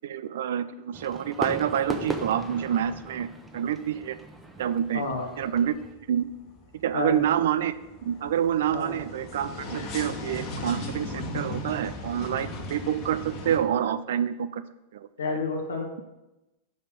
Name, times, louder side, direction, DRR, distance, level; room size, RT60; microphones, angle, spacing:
voice 1, 0.0-3.3 3.5-4.2 4.6-5.0 5.4-5.7 6.1-6.3 6.8-7.7 8.0-14.6 14.9-15.1, right 9 dB, 60° right, 13 dB, 0.4 m, -27 dB
Fireworks, 0.9-5.9, right 1 dB, 5° right, 0.9 m, -38 dB
sound 1, 3.4-4.1 4.4-13.6, left 2 dB, 35° left, 1.3 m, -38 dB
voice 2, 4.9-5.3 6.9-7.2 8.7-8.9 15.2-16.0, left 4 dB, 70° left, 1 dB, 1.1 m, -30 dB
5.6 x 5.5 x 6.6 m, 0.96 s
figure-of-eight pair, 90°, 0 cm